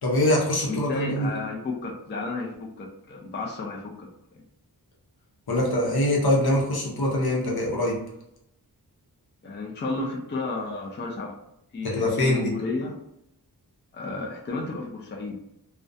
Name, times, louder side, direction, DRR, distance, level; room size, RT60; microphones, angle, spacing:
voice 1, 0.0-1.3 5.5-8.0 11.8-12.5, left 1 dB, 65° left, -2 dB, 0.8 m, -23 dB
voice 2, 0.7-4.1 4.3-4.4 9.4-11.3 11.7-12.9 13.9-15.4, left 3 dB, 30° left, -1 dB, 0.4 m, -32 dB
2.3 x 2.1 x 2.5 m, 0.79 s
wide cardioid pair, 90°, 39 cm